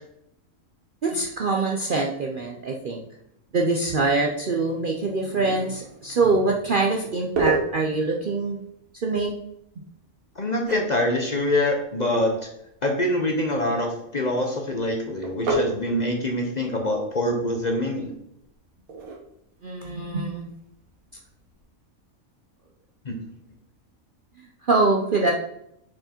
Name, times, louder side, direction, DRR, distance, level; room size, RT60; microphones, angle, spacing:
voice 1, 1.0-3.0 3.5-8.6 9.0-9.3 19.6-20.5 24.6-25.3, right 3 dB, 55° right, 1 dB, 0.6 m, -24 dB
sound 1, 7.2-21.6, right 3 dB, 75° right, 1.8 m, -35 dB
voice 2, 10.4-12.5 12.8-18.1 23.0-23.2, left 1 dB, 35° left, 2 dB, 0.8 m, -25 dB
6.2 x 4.7 x 4.3 m, 0.78 s
omnidirectional pair, 1.5 m